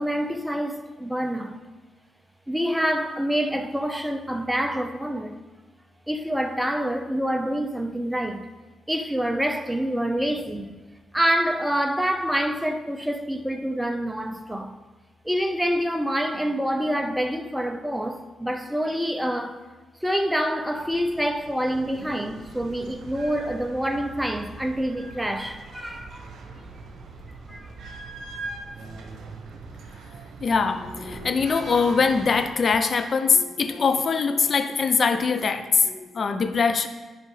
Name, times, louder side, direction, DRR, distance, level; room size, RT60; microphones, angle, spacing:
voice 1, 0.0-1.6 2.5-5.4 6.1-8.5 8.9-10.7 11.1-14.8 15.2-19.6 20.0-26.3 27.5-27.7, equal, 5° right, 0.7 m, -26 dB
sound 1, 20.8-32.5, right 3 dB, 65° right, 1.0 m, -41 dB
voice 2, 30.4-36.9, left 5 dB, 50° left, 0.7 m, -22 dB
10.5 x 5.5 x 3.4 m
hypercardioid pair, 50°, 0 cm